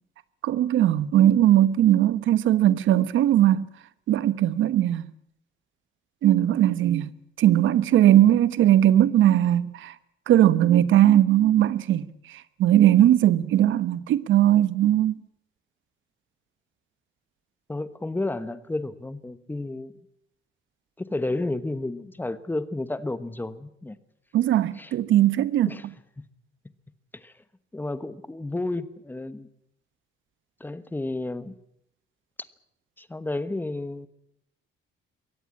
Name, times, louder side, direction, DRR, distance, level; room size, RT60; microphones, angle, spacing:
voice 1, 0.4-3.7 4.1-5.1 6.2-7.1 7.4-9.9 10.3-15.2 24.3-25.7, right 12 dB, 75° right, 1.2 m, -19 dB
voice 2, 17.7-19.9 21.0-24.0 24.8-24.9 25.6-25.9 26.2-26.3 27.1-27.3 27.7-29.5 30.6-31.5 33.0-34.1, left 2 dB, 10° left, 1.2 m, -31 dB
22.5 x 17.5 x 8.6 m
cardioid pair, 145°, 20 cm